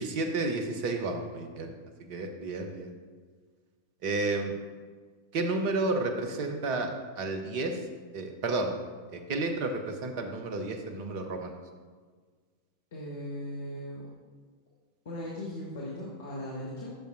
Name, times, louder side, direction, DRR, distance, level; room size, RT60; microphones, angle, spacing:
voice 1, 0.0-1.7 2.1-2.9 4.0-4.5 5.3-6.9 7.2-7.8 8.1-8.7 9.1-11.5, right 2 dB, 45° right, 6 dB, 1.0 m, -31 dB
voice 2, 12.9-14.1 15.0-16.9, left 1 dB, 55° left, -3 dB, 1.4 m, -38 dB
10.5 x 6.6 x 2.6 m, 1.5 s
figure-of-eight pair, 90°, 0 cm